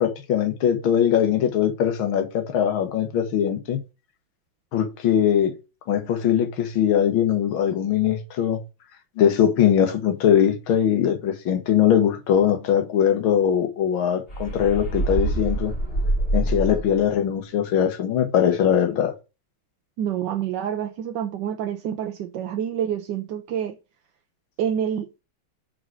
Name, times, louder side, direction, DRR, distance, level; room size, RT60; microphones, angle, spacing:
voice 1, 0.0-3.8 4.7-5.5 5.9-8.6 9.2-15.7 16.3-19.2, left 9 dB, 75° left, 1.9 m, -21 dB
sound 1, 14.3-17.1, right 1 dB, 30° left, 1.8 m, -25 dB
voice 2, 20.0-23.8 24.6-25.1, right 9 dB, 70° right, 1.2 m, -27 dB
5.1 x 4.8 x 6.1 m
omnidirectional pair, 2.2 m